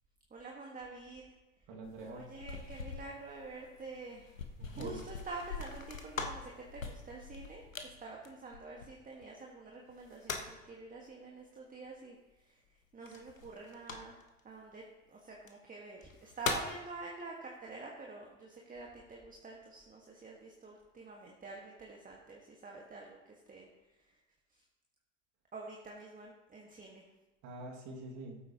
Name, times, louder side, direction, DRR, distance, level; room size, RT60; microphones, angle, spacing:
voice 1, 0.3-1.3 2.0-4.4 4.7-12.2 12.4-12.6 12.9-14.1 14.4-14.8 15.1-23.7 25.5-27.1, right 3 dB, 20° right, -1 dB, 1.5 m, -47 dB
voice 2, 1.7-2.3 4.6-5.0 27.4-28.4, right 2 dB, 50° right, 0 dB, 2.1 m, -45 dB
sound 1, 1.8-9.2 9.9-10.7 13.1-14.4 15.3-15.5 16.0-16.8, left 4 dB, 90° left, 0.9 m, -42 dB
16.0 x 8.6 x 2.9 m, 1.1 s
figure-of-eight pair, 65°, 38 cm